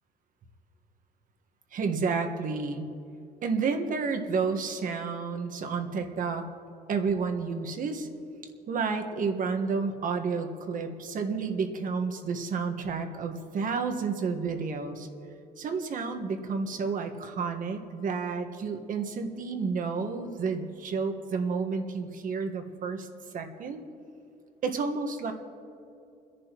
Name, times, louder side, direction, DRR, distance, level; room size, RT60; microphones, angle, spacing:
voice 1, 1.7-2.9 3.4-6.5 6.9-8.1 8.7-15.1 15.6-23.1 23.3-23.8 24.6-25.3, right 5 dB, 55° right, 5 dB, 1.5 m, -30 dB
29.5 x 11.0 x 3.0 m, 2.7 s
cardioid pair, 110°, 17 cm